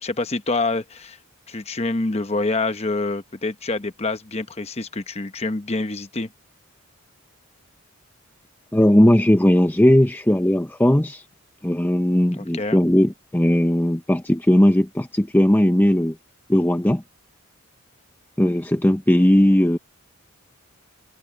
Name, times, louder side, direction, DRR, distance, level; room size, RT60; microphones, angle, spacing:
voice 1, 0.0-1.2 1.5-6.3 12.4-12.8, left 3 dB, 30° left, 0.9 m, -26 dB
voice 2, 8.7-11.2 11.6-16.2 16.5-17.0 18.4-19.8, left 1 dB, 10° left, 0.6 m, -17 dB
head